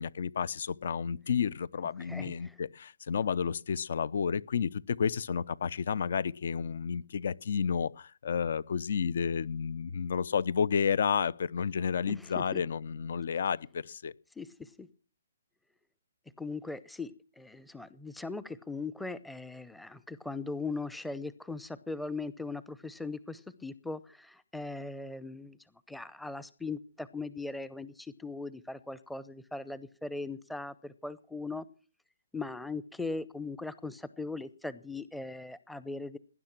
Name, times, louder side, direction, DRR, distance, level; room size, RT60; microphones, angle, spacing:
voice 1, 0.0-14.1, left 6 dB, 60° left, 0.7 m, -31 dB
voice 2, 2.0-2.5 12.1-12.6 14.4-14.9 16.4-25.6 25.9-31.6 32.3-36.2, left 3 dB, ahead, 0.7 m, -39 dB
19.0 x 11.0 x 6.0 m
hypercardioid pair, 160°, 0 cm